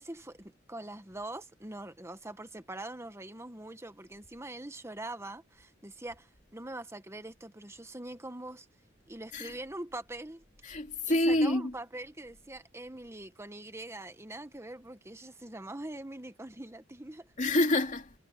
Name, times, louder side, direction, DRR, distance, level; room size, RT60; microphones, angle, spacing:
voice 1, 0.0-8.7 9.1-10.4 11.0-17.3, right 2 dB, 15° right, 1.4 m, -43 dB
voice 2, 10.6-11.8 17.4-18.1, left 1 dB, 40° left, 2.6 m, -27 dB
head